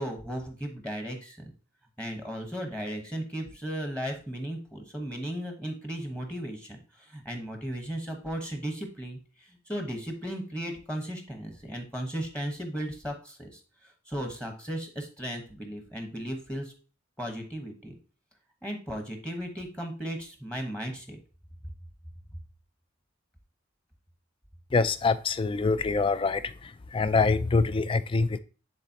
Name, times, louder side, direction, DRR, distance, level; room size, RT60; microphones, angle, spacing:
voice 1, 0.0-1.5 2.0-16.7 17.2-17.9 18.6-21.2, equal, 5° left, 1.1 m, -36 dB
voice 2, 24.7-26.4 26.9-28.4, left 4 dB, 25° left, 0.3 m, -24 dB
9.8 x 4.0 x 2.8 m
head